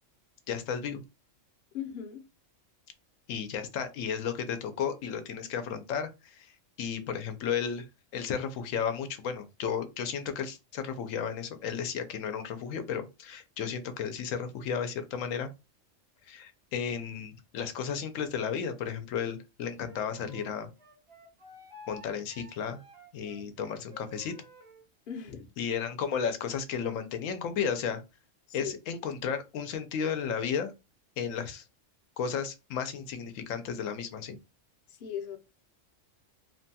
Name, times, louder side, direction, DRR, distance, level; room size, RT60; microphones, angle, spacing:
voice 1, 0.5-1.0 3.3-6.5 6.8-7.8 8.1-15.5 16.3-20.7 21.9-22.8 23.1-24.3 25.6-28.0 28.5-30.7 31.2-31.6 32.2-34.4, left 7 dB, 85° left, 1.0 m, -33 dB
voice 2, 1.7-2.2 25.1-25.5 28.5-28.8 34.9-35.4, left 8 dB, 55° left, 0.7 m, -38 dB
Wind instrument woodwind instrument, 19.8-24.9, left 1 dB, 30° right, 0.6 m, -51 dB
3.0 x 2.2 x 2.7 m
omnidirectional pair, 1.3 m